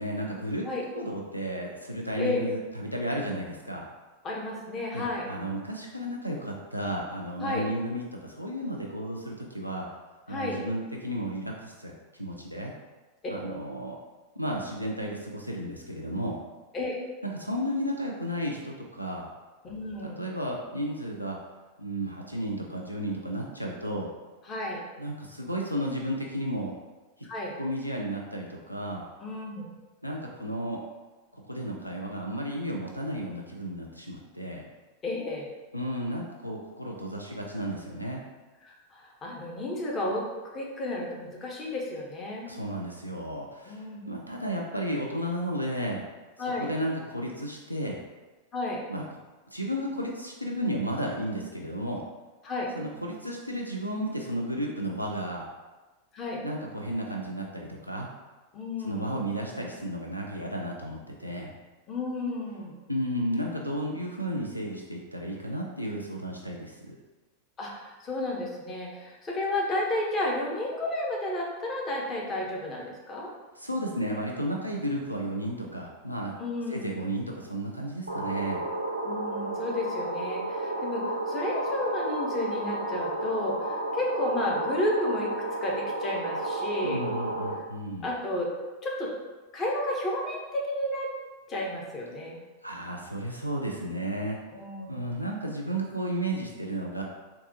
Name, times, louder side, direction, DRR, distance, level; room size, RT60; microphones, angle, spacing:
voice 1, 0.0-0.7 0.9-3.9 4.9-9.9 10.3-12.7 13.3-14.0 14.4-16.4 17.4-19.3 20.0-21.4 21.8-24.1 25.0-26.7 27.6-29.1 30.0-30.8 31.3-34.6 35.7-38.2 42.5-46.0 46.4-48.0 48.9-49.0 49.5-52.0 52.8-55.5 56.4-58.1 58.8-61.5 62.9-67.0 73.6-76.3 76.7-78.6 86.8-88.1 92.6-94.4 94.9-97.0, equal, 90° left, 0 dB, 0.3 m, -33 dB
voice 2, 4.2-5.2 7.4-7.7 10.3-10.6 16.7-17.0 19.6-20.2 24.5-24.8 27.2-27.5 29.2-29.7 35.0-35.5 38.6-40.2 40.5-42.5 43.7-44.2 46.4-46.7 48.5-48.8 52.4-52.7 56.1-56.4 58.5-59.1 61.9-62.7 67.6-73.3 76.4-76.9 79.1-85.3 85.6-87.0 88.0-88.5 88.8-89.1 89.5-91.1 91.5-92.4 94.5-95.0, left 1 dB, 25° left, -2 dB, 0.8 m, -32 dB
sound 1, 78.1-87.5, right 2 dB, 85° right, 0.4 m, -32 dB
4.0 x 2.2 x 2.7 m, 1.2 s
figure-of-eight pair, 90°, 0 cm